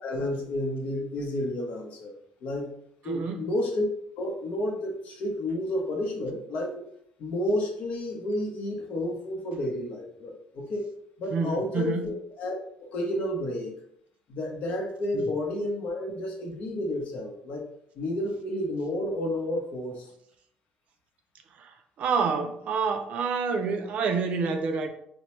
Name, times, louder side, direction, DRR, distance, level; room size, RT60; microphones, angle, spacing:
voice 1, 0.0-2.2 2.4-2.7 3.0-3.8 4.2-6.8 7.2-10.8 11.2-12.6 12.8-13.7 14.3-17.6 18.0-20.0, left 1 dB, 55° left, 0.8 m, -31 dB
voice 2, 3.1-3.4 11.3-12.0 15.1-15.2 21.6-24.9, right 5 dB, 50° right, 0.4 m, -28 dB
4.3 x 2.1 x 3.0 m
cardioid pair, 160°, 3 cm